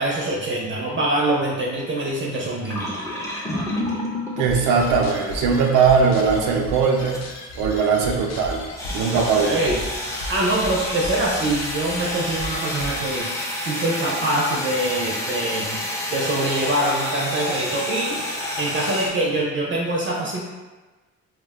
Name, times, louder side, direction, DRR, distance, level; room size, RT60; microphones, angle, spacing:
voice 1, 0.0-3.0 9.1-9.8 10.2-13.3 13.6-15.8 16.1-18.2 18.6-20.4, right 1 dB, 40° right, -2 dB, 0.5 m, -24 dB
sound 1, 0.8-4.5 5.3-5.5 5.8-6.5 7.1-7.3 8.7-19.1, left 1 dB, 10° left, 0.6 m, -30 dB
voice 2, 4.4-7.2 7.6-8.6 8.9-9.7, right 5 dB, 90° right, 1 dB, 0.5 m, -19 dB
sound 2, 4.5-13.2, left 1 dB, 65° left, 0.5 m, -35 dB
2.4 x 2.1 x 3.5 m, 1.2 s
cardioid pair, 90°, 30 cm